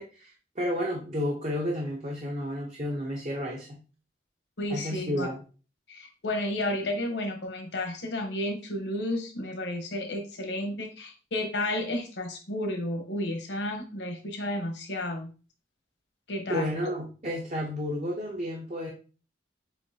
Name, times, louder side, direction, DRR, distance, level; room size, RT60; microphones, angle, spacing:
voice 1, 0.0-3.8 4.7-5.4 16.5-18.9, equal, 40° right, -1 dB, 0.9 m, -31 dB
voice 2, 4.6-5.3 5.9-15.3 16.3-16.7, left 1 dB, 75° left, 4 dB, 1.0 m, -32 dB
7.0 x 2.7 x 2.8 m, 0.36 s
head